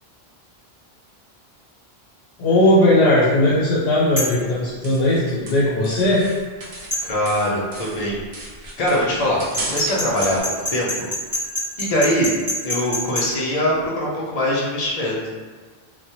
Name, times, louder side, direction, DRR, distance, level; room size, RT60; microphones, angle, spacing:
voice 1, 2.4-6.2, left 1 dB, 90° left, -6 dB, 0.8 m, -17 dB
sound 1, 4.2-4.4 6.9-7.1 9.5-13.3, left 1 dB, 10° right, 1.0 m, -25 dB
sound 2, 4.5-7.0 7.2-10.4, right 2 dB, 50° right, 0.4 m, -35 dB
voice 2, 7.0-8.5 8.8-9.4 9.7-10.4 10.7-11.1 11.8-12.4 12.6-15.3, equal, 50° left, -4 dB, 0.5 m, -22 dB
2.2 x 2.1 x 2.8 m, 1.4 s
omnidirectional pair, 1.1 m